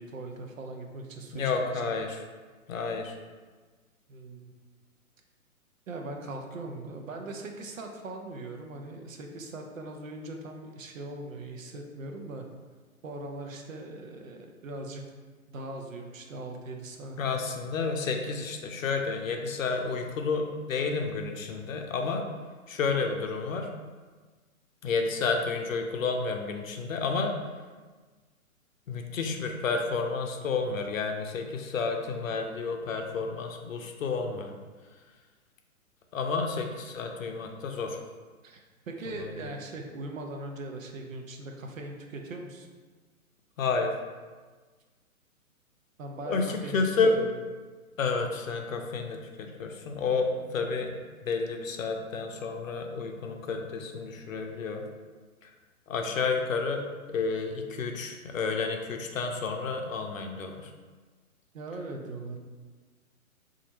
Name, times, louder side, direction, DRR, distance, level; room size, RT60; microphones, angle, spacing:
voice 1, 0.0-1.5 1.8-1.9 4.1-4.5 5.9-12.5 13.0-15.0 15.5-17.2 38.4-42.7 46.0-46.8 47.2-47.3 61.5-62.4, right 2 dB, 65° right, 3 dB, 0.6 m, -40 dB
voice 2, 1.3-2.2 2.7-3.1 17.2-22.3 22.7-23.7 24.8-27.4 28.9-34.5 36.1-38.0 39.2-39.3 43.6-44.0 46.3-47.2 48.0-50.9 51.2-54.9 55.4-55.5 55.9-56.8 57.1-60.7, left 4 dB, 65° left, 3 dB, 0.6 m, -30 dB
4.0 x 2.5 x 2.8 m, 1.4 s
figure-of-eight pair, 130°, 43 cm